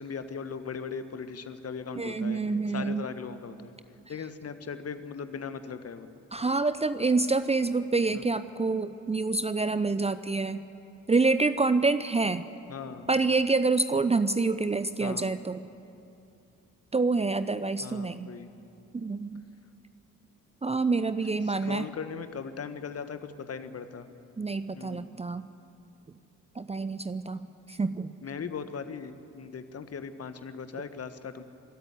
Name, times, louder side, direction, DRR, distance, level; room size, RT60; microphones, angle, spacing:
voice 1, 0.0-2.4 2.7-3.7 4.1-6.1 8.1-8.2 12.7-13.1 15.0-15.4 17.8-18.5 21.4-24.1 24.7-25.1 28.2-31.4, left 6 dB, 40° left, 10 dB, 1.5 m, -39 dB
voice 2, 2.0-3.1 6.3-10.6 11.1-12.4 13.1-15.6 16.9-18.3 18.9-19.4 20.6-21.9 24.4-25.5 26.6-28.1, right 3 dB, 15° right, 12 dB, 0.7 m, -27 dB
24.5 x 13.5 x 9.7 m, 2.7 s
figure-of-eight pair, 40°, 38 cm